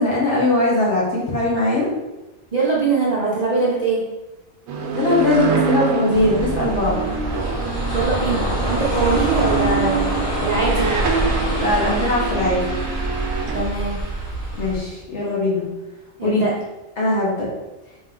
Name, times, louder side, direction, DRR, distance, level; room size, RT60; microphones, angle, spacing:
voice 1, 0.0-1.9 4.9-7.0 11.6-12.6 14.5-15.6 16.2-16.5 17.0-17.5, left 2 dB, 60° left, -5 dB, 1.5 m, -20 dB
voice 2, 2.5-4.0 7.9-10.9 13.5-14.0 16.2-16.5, right 4 dB, 45° right, -6 dB, 0.5 m, -22 dB
sound 1, 4.7-13.6, right 5 dB, 85° right, 1.0 m, -25 dB
sound 2, 6.1-14.8, right 1 dB, 80° left, 2.0 m, -25 dB
3.9 x 2.8 x 3.8 m, 1.1 s
omnidirectional pair, 1.4 m